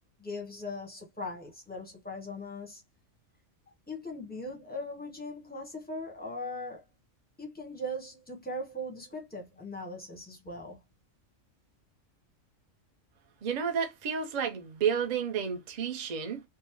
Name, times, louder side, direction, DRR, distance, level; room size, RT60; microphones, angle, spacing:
voice 1, 0.2-2.8 3.9-6.8 7.4-10.8, left 1 dB, 10° left, 0.7 m, -39 dB
voice 2, 13.4-16.4, right 7 dB, 45° right, 0.6 m, -31 dB
3.4 x 2.0 x 2.9 m
omnidirectional pair, 1.4 m